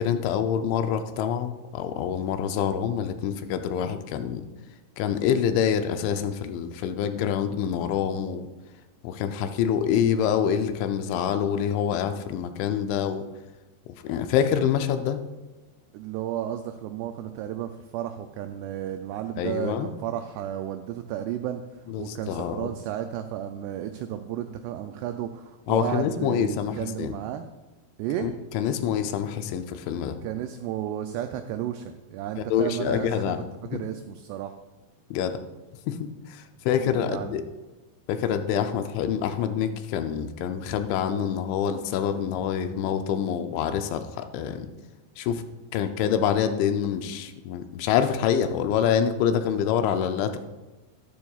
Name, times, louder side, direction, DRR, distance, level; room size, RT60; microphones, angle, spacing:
voice 1, 0.0-4.4 5.0-8.5 9.0-13.2 14.0-15.2 19.4-19.9 21.9-22.7 25.7-27.2 28.2-30.2 32.5-33.4 33.7-33.8 35.1-35.4 35.9-37.4 38.1-44.7 45.2-45.4 45.7-50.4, left 8 dB, 85° left, 8 dB, 3.0 m, -26 dB
voice 2, 15.9-21.6 22.0-27.5 28.0-28.3 30.2-33.3 33.6-34.5 36.8-37.5 38.7-38.8, right 11 dB, 90° right, 7 dB, 2.3 m, -33 dB
12.5 x 11.5 x 2.4 m, 1.1 s
omnidirectional pair, 5.2 m